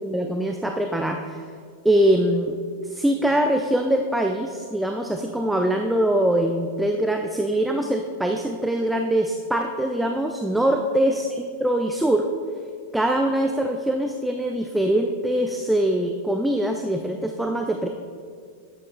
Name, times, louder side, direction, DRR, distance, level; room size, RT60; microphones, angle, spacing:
voice 1, 0.0-1.4 1.8-12.3 12.9-17.9, right 1 dB, 5° right, 4 dB, 0.4 m, -23 dB
10.5 x 8.2 x 2.3 m, 2.1 s
figure-of-eight pair, 90°, 0 cm